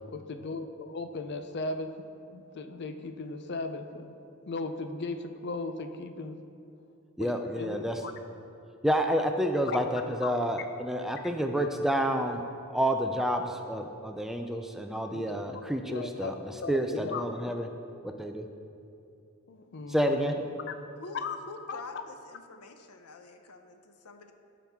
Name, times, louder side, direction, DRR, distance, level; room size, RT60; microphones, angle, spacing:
voice 1, 0.1-2.0 2.3-4.1 4.5-6.4 7.2-8.1 9.7-9.8 10.2-10.3 15.1-15.4 15.9-16.3 16.6-17.2 19.5-20.4 21.2-21.4 21.7-21.8, left 3 dB, 50° left, 8 dB, 0.5 m, -37 dB
voice 2, 7.2-8.0 8.8-12.4 12.7-16.3 16.7-17.7 18.0-18.5 19.9-20.4, equal, ahead, 5 dB, 0.4 m, -29 dB
voice 3, 21.0-24.3, left 3 dB, 85° left, 7 dB, 0.7 m, -46 dB
15.5 x 6.0 x 3.6 m, 2.6 s
head